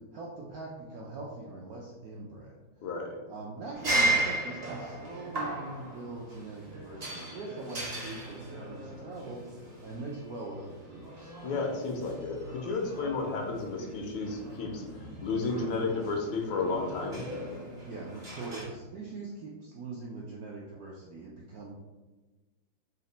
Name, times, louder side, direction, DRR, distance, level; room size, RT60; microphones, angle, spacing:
voice 1, 0.1-2.5 3.3-9.4 9.8-11.3 17.8-21.7, right 3 dB, 80° right, -3 dB, 0.8 m, -42 dB
voice 2, 2.8-3.2 11.4-17.2, left 3 dB, 85° left, 2 dB, 1.5 m, -32 dB
sound 1, 3.7-18.6, right 2 dB, 45° right, 0.5 m, -36 dB
4.1 x 2.1 x 3.9 m, 1.2 s
omnidirectional pair, 2.1 m